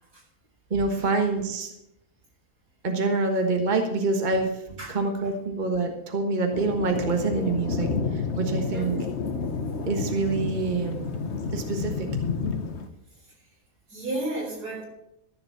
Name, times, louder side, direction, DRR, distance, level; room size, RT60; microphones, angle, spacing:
voice 1, 0.7-1.7 2.8-4.6 4.9-9.0 9.9-11.0 11.5-12.1, right 3 dB, 30° right, 4 dB, 1.4 m, -26 dB
Thunder, 6.5-12.9, left 5 dB, 50° left, 1.2 m, -30 dB
voice 2, 8.7-9.1 13.9-14.8, right 2 dB, 80° right, -3 dB, 5.3 m, -33 dB
14.0 x 7.0 x 7.0 m, 0.79 s
omnidirectional pair, 1.7 m